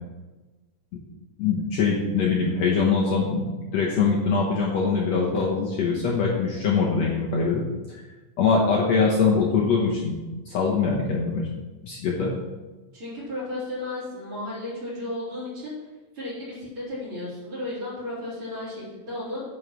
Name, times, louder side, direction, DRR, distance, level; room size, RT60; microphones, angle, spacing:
voice 1, 1.4-3.5 3.7-7.6 8.4-10.2 10.5-11.5 11.8-12.4, left 5 dB, 65° left, -3 dB, 1.9 m, -23 dB
voice 2, 12.9-15.7 16.1-19.4, left 1 dB, 35° right, -8 dB, 4.3 m, -34 dB
9.5 x 5.4 x 5.9 m, 1.2 s
omnidirectional pair, 3.9 m